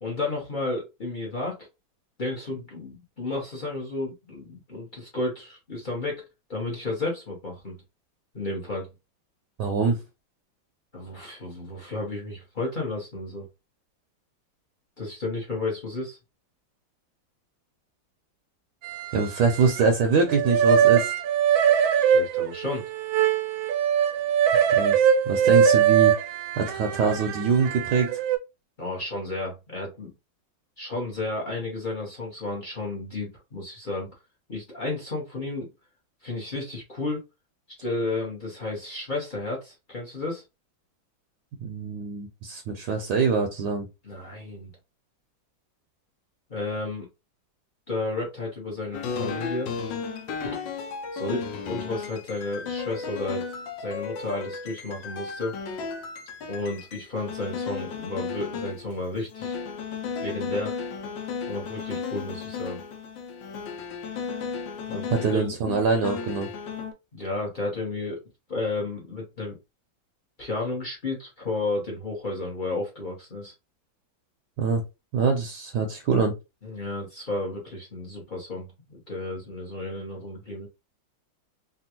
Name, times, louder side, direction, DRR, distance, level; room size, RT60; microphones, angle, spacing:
voice 1, 0.0-1.7 2.2-6.2 6.5-7.8 8.3-8.9 10.9-13.5 15.0-16.2 21.9-22.8 28.8-30.1 30.8-34.1 34.5-35.7 36.2-37.2 37.8-40.4 44.0-44.7 46.5-47.1 47.9-49.7 51.1-53.5 53.8-55.6 56.5-59.5 60.2-60.7 61.5-62.8 64.9-65.4 67.1-68.2 68.5-69.6 70.4-73.5 76.6-80.7, left 2 dB, 35° left, 0.8 m, -32 dB
voice 2, 9.6-10.0 19.1-21.1 24.7-26.2 26.6-28.2 41.6-43.8 65.1-66.5 74.6-74.8 75.1-76.3, right 5 dB, 70° right, 1.1 m, -24 dB
sound 1, 18.8-20.0 20.3-28.4, right 8 dB, 90° right, 1.4 m, -22 dB
sound 2, 48.9-59.0 59.3-66.9, left 5 dB, 75° left, 1.3 m, -34 dB
3.5 x 2.3 x 2.8 m
omnidirectional pair, 2.1 m